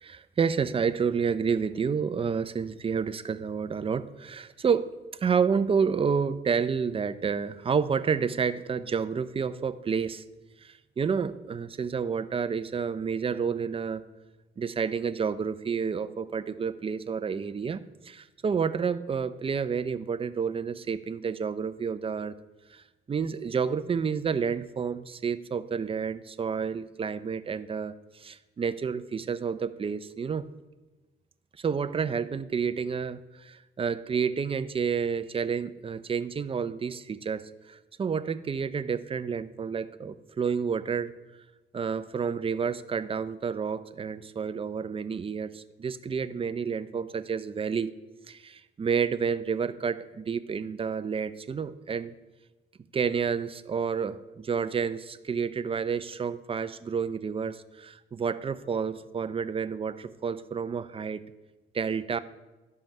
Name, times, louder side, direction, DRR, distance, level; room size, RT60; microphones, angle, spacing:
voice 1, 0.0-4.9 5.2-10.2 10.6-14.0 14.6-22.3 22.7-30.4 31.6-41.1 41.7-47.9 48.3-52.1 52.9-61.2 61.7-62.2, right 6 dB, 30° right, 13 dB, 0.5 m, -30 dB
12.0 x 5.6 x 5.5 m, 1.1 s
cardioid pair, 90°, 20 cm